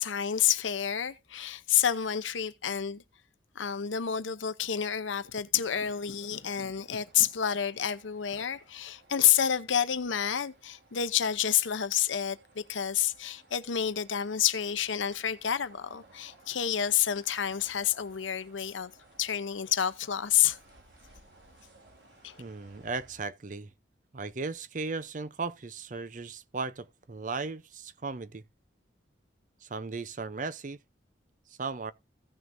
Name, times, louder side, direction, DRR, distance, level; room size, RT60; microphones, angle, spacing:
voice 1, 0.0-3.0 3.5-18.9 19.2-20.6 22.2-22.4, left 9 dB, 85° left, 0.8 m, -29 dB
sound 1, 5.5-23.2, right 2 dB, 70° right, 3.8 m, -60 dB
voice 2, 22.4-23.7 24.1-28.4 29.6-30.8 31.6-31.9, right 4 dB, 40° right, 0.6 m, -36 dB
16.0 x 6.2 x 2.6 m
head